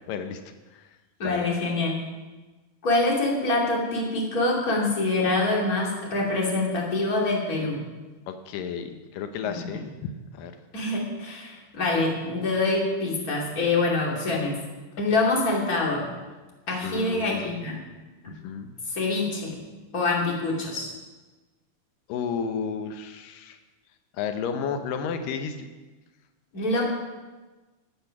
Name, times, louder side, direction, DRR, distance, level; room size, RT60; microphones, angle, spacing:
voice 1, 0.1-0.4 0.7-0.9 1.2-1.4 8.3-10.5 16.8-17.6 18.3-18.8 22.1-23.6 24.2-25.7, left 6 dB, 85° left, 7 dB, 2.5 m, -32 dB
voice 2, 1.2-2.0 2.8-7.8 9.5-9.8 10.7-14.6 15.0-16.1 16.7-17.8 18.2-18.3 18.9-19.6 19.9-20.9 26.5-26.8, left 2 dB, 30° left, -2 dB, 2.8 m, -25 dB
14.5 x 9.1 x 5.9 m, 1.2 s
omnidirectional pair, 3.8 m